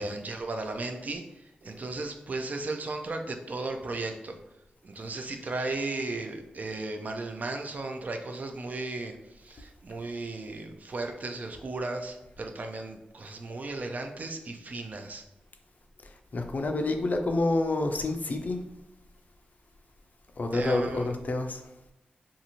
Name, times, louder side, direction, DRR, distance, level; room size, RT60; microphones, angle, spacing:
voice 1, 0.0-4.4 4.8-15.2 20.5-21.1, right 2 dB, 50° right, 5 dB, 0.4 m, -35 dB
voice 2, 16.0-18.6 20.4-21.6, left 2 dB, 55° left, 5 dB, 0.4 m, -28 dB
2.6 x 2.4 x 2.9 m, 0.93 s
cardioid pair, 55°, 3 cm